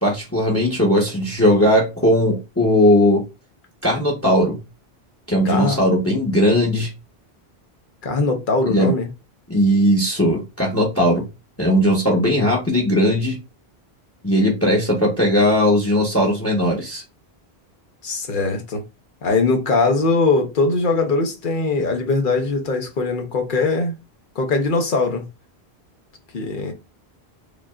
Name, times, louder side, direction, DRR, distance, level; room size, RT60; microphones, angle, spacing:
voice 1, 0.0-3.2 3.8-4.6 5.3-6.9 8.7-8.9 9.5-11.2 11.6-13.4 14.2-17.0, equal, 15° left, 1.0 m, -18 dB
voice 2, 5.4-5.8 8.0-9.1 18.0-18.8 19.2-23.9 24.4-25.3 26.3-26.7, left 3 dB, 55° left, 1.0 m, -21 dB
5.0 x 2.7 x 2.4 m
omnidirectional pair, 1.1 m